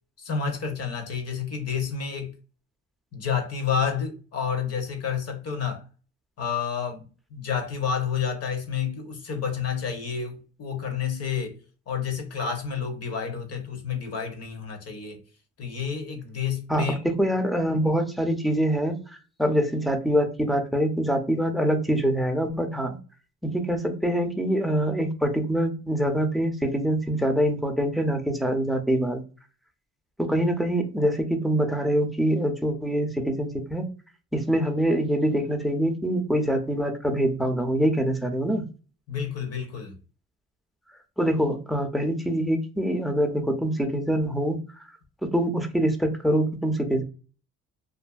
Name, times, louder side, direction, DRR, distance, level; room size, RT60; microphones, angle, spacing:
voice 1, 0.2-2.3 3.1-5.8 6.4-11.6 11.9-15.2 15.6-17.0 39.1-40.0, left 7 dB, 55° left, 0.9 m, -30 dB
voice 2, 16.7-19.0 19.4-23.0 23.4-29.2 30.2-33.9 34.3-38.7 41.2-44.6 45.2-47.0, equal, ahead, 0.5 m, -24 dB
2.6 x 2.6 x 2.3 m
cardioid pair, 90°, 30 cm